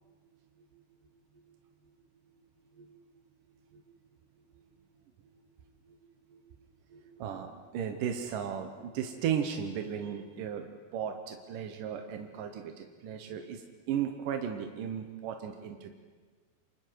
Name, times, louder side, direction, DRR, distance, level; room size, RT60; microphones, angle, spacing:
voice 1, 6.9-15.9, right 8 dB, 70° right, 5 dB, 2.2 m, -36 dB
28.5 x 26.5 x 4.7 m, 1.5 s
omnidirectional pair, 5.0 m